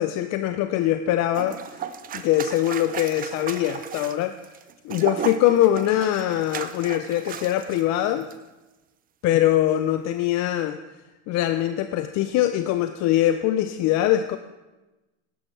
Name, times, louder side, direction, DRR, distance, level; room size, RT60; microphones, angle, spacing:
voice 1, 0.0-1.6 2.1-4.4 4.8-8.3 9.2-10.8 11.3-14.4, left 13 dB, 40° left, 9 dB, 0.5 m, -22 dB
sound 1, 1.3-7.8 8.2-8.4, right 8 dB, 20° right, 0.5 m, -35 dB
12.0 x 11.0 x 3.3 m, 1.1 s
supercardioid pair, 110°, 42 cm